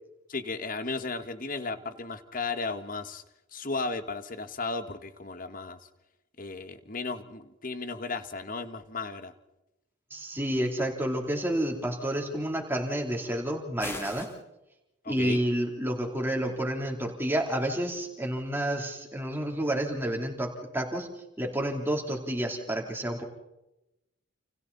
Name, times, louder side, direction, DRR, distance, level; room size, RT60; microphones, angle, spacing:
voice 1, 0.3-3.2 3.5-5.8 6.4-9.3 15.0-15.4, left 3 dB, 40° left, 10 dB, 1.6 m, -35 dB
voice 2, 10.1-14.3 15.1-21.1 21.4-23.2, right 1 dB, 10° right, 2 dB, 3.5 m, -30 dB
sound 1, 13.8-14.4, left 2 dB, 10° left, 2.1 m, -38 dB
30.0 x 29.0 x 4.2 m, 0.94 s
head